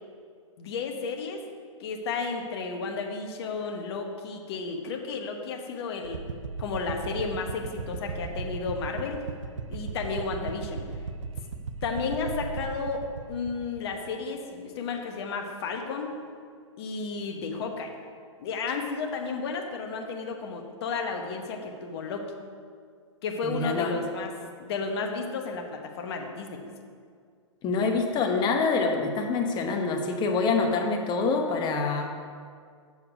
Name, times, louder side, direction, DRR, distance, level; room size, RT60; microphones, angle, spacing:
voice 1, 0.6-1.4 1.8-6.2 6.6-9.2 9.7-10.8 11.8-16.2 16.8-17.9 18.4-22.3 23.2-24.3 24.6-26.6, left 4 dB, 55° left, 3 dB, 1.1 m, -33 dB
sound 1, 6.0-14.2, right 4 dB, 75° right, 0.6 m, -37 dB
voice 2, 23.4-24.0 27.6-32.1, left 4 dB, 25° left, 4 dB, 1.0 m, -26 dB
7.0 x 6.8 x 4.9 m, 2.1 s
hypercardioid pair, 120°, 16 cm